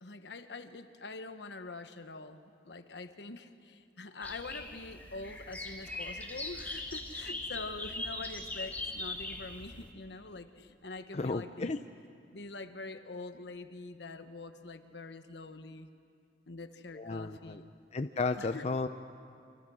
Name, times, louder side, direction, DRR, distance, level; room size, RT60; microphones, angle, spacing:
voice 1, 0.0-11.8 12.3-15.9 16.5-17.7 18.4-18.7, left 3 dB, 70° left, 9 dB, 1.2 m, -45 dB
sound 1, 4.2-9.9, left 2 dB, 10° left, 2.6 m, -40 dB
voice 2, 11.2-11.8 17.0-17.6 17.9-18.9, left 3 dB, 40° left, 8 dB, 0.5 m, -33 dB
29.5 x 24.5 x 6.3 m, 2.4 s
head